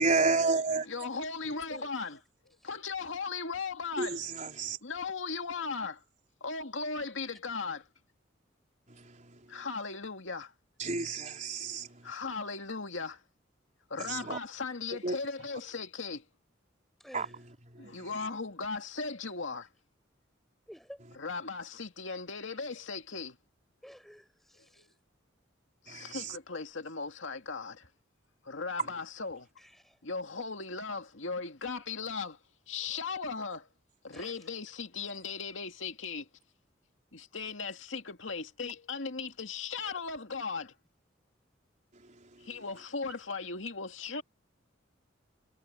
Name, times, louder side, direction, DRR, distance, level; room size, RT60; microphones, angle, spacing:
voice 1, 0.0-0.9 4.0-4.8 8.9-9.4 10.8-11.9 14.1-14.4 15.0-15.2 17.1-17.3 17.7-18.1 25.9-26.3, right 3 dB, 40° right, 3.9 m, -31 dB
voice 2, 0.8-2.2 2.6-4.2 4.8-6.0 6.4-7.9 9.5-10.5 11.6-13.2 13.9-16.2 17.8-19.7 21.1-23.4 24.8-24.9 25.8-27.9 28.4-29.5 30.0-32.4 32.7-33.7 34.0-36.3 37.1-40.7 42.4-44.2, left 4 dB, 80° left, 2.2 m, -37 dB
voice 3, 20.7-21.0 23.8-24.8 29.9-30.0 34.1-34.3, equal, ahead, 4.6 m, -50 dB
head